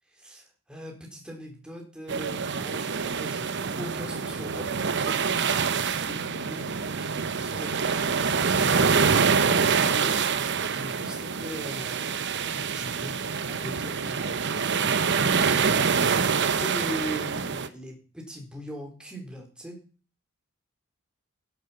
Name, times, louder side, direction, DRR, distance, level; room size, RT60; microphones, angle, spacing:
voice 1, 0.2-4.7 5.0-5.2 5.8-6.7 7.0-8.1 8.6-10.1 10.6-19.8, equal, 5° right, 0 dB, 4.0 m, -41 dB
sound 1, 2.1-17.7, right 5 dB, 50° right, 0.9 m, -26 dB
11.5 x 11.0 x 5.7 m, 0.37 s
head